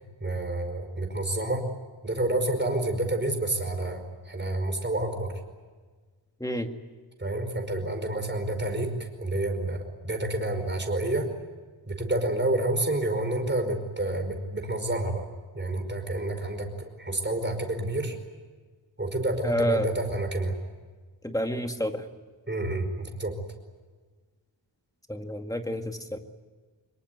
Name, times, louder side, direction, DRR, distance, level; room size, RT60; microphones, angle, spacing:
voice 1, 0.2-1.7 2.0-4.0 4.2-5.3 7.2-11.3 11.9-15.3 15.5-16.7 17.0-18.1 19.0-20.5 22.5-23.3, right 1 dB, 25° right, 5 dB, 5.1 m, -29 dB
voice 2, 6.4-6.7 19.4-19.9 21.2-22.0 25.1-26.2, equal, 5° left, 5 dB, 2.0 m, -29 dB
26.0 x 22.5 x 9.5 m, 1.4 s
wide cardioid pair, 130°, 46 cm